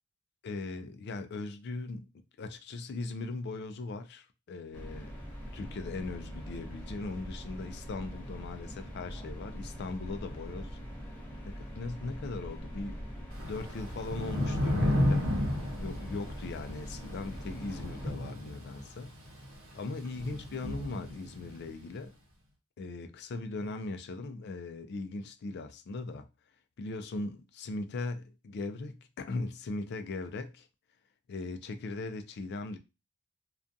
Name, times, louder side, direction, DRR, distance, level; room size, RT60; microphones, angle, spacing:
voice 1, 0.4-2.1 2.4-5.1 5.5-10.8 11.4-13.0 13.4-15.3 15.8-19.1 19.7-22.2 22.8-26.3 26.8-30.7 31.3-32.8, left 3 dB, 50° left, 0.3 m, -39 dB
sound 1, 4.7-18.1, equal, 10° left, 0.7 m, -43 dB
Thunder / Rain, 13.3-21.7, left 1 dB, 65° right, 0.9 m, -33 dB
2.5 x 2.3 x 2.5 m
head